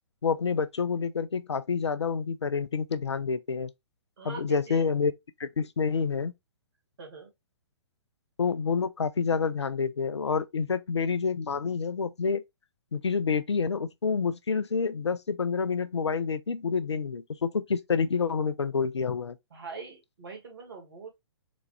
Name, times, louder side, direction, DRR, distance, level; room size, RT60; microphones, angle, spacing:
voice 1, 0.2-3.7 4.2-5.1 5.4-6.3 8.4-12.4 12.9-19.4, left 5 dB, 75° left, 0.5 m, -28 dB
voice 2, 4.2-4.8 7.0-7.3 19.5-21.1, right 4 dB, 60° right, 2.0 m, -43 dB
4.0 x 2.3 x 3.2 m
figure-of-eight pair, 120°, 14 cm